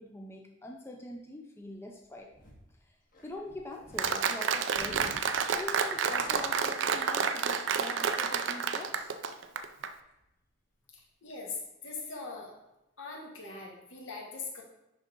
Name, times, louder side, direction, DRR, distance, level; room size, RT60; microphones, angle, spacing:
voice 1, 0.0-2.3 2.8-3.0 3.2-9.1, left 1 dB, 10° left, 1 dB, 0.5 m, -44 dB
sound 1, 1.7-2.7 3.1-7.8 8.2-8.3 8.5-9.0 9.3-9.4 9.5-10.4 11.3-11.4, equal, 45° left, 1.4 m, -53 dB
Applause, 4.0-9.9, right 6 dB, 65° right, 0.4 m, -30 dB
voice 2, 10.9-12.5 13.0-14.6, left 4 dB, 75° left, -1 dB, 1.7 m, -41 dB
10.5 x 3.7 x 3.8 m, 0.91 s
head